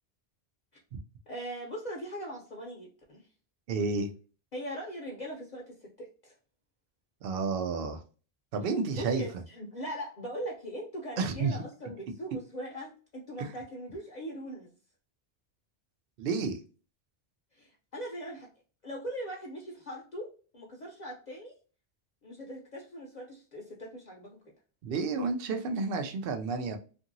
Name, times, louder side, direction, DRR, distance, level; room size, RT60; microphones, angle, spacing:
voice 1, 1.3-3.2 4.5-6.3 8.9-14.7 17.6-18.5 18.8-21.5 22.2-24.4, equal, 50° left, -1 dB, 0.7 m, -40 dB
voice 2, 3.7-4.1 7.2-8.0 8.5-9.2 11.2-11.6 13.4-13.5 16.2-16.6 24.8-26.8, right 4 dB, 65° right, 7 dB, 0.7 m, -30 dB
2.8 x 2.6 x 2.5 m, 0.38 s
omnidirectional pair, 1.1 m